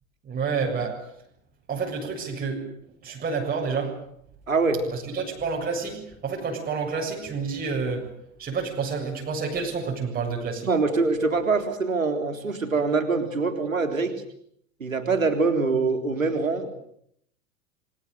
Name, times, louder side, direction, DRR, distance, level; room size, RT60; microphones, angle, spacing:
voice 1, 0.2-1.0 1.7-2.6 3.0-4.0 4.9-8.0 8.4-10.7, right 5 dB, 20° right, -1 dB, 7.4 m, -29 dB
voice 2, 4.5-4.8 10.6-14.1 14.8-16.7, right 4 dB, 80° right, 6 dB, 3.9 m, -24 dB
29.0 x 25.0 x 6.8 m, 0.70 s
figure-of-eight pair, 85°, 39 cm